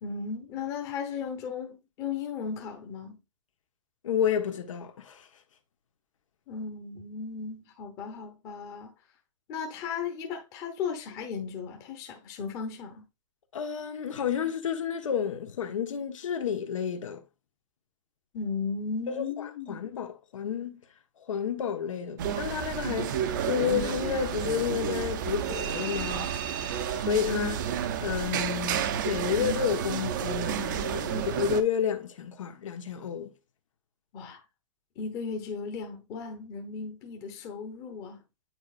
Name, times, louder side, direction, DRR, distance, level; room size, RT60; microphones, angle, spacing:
voice 1, 0.0-3.2 6.5-8.9 9.5-13.1 18.3-19.8 34.1-34.4 35.0-38.2, left 5 dB, 20° left, 1.0 m, -36 dB
voice 2, 4.0-5.3 13.5-17.2 19.1-20.8 21.2-23.2 23.5-26.3 26.9-33.3, left 8 dB, 75° left, 1.2 m, -31 dB
sound 1, 22.2-31.6, right 9 dB, 40° right, 0.6 m, -31 dB
8.9 x 4.5 x 2.4 m
hypercardioid pair, 165°, 16 cm